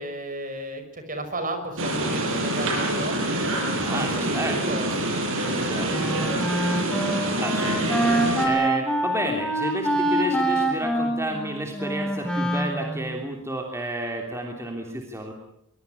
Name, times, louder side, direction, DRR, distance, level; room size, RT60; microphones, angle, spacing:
voice 1, 0.0-5.1, right 2 dB, 40° right, 8 dB, 5.7 m, -34 dB
sound 1, 1.8-8.5, right 1 dB, 60° right, 7.0 m, -26 dB
voice 2, 3.7-4.6 5.6-6.3 7.4-15.3, right 1 dB, 10° right, 2 dB, 3.2 m, -31 dB
Wind instrument woodwind instrument, 5.9-13.2, right 1 dB, 5° left, 4.1 m, -25 dB
23.5 x 23.5 x 9.7 m, 0.77 s
head